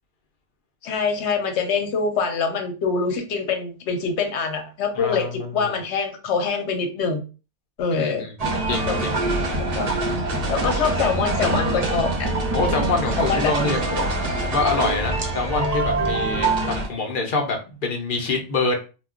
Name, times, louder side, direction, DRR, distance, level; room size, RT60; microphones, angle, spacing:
voice 1, 0.8-7.2 7.8-8.3 8.9-9.0 9.6-10.0 10.5-12.3 12.6-12.8 13.2-14.1, left 5 dB, 80° left, 5 dB, 0.9 m, -25 dB
voice 2, 5.0-5.7 7.9-8.3 8.7-9.1 12.5-13.8 14.4-18.8, left 3 dB, 55° left, 2 dB, 0.7 m, -26 dB
sound 1, 8.4-16.9, right 2 dB, 45° right, 0.6 m, -24 dB
2.2 x 2.2 x 3.5 m, 0.33 s
omnidirectional pair, 1.2 m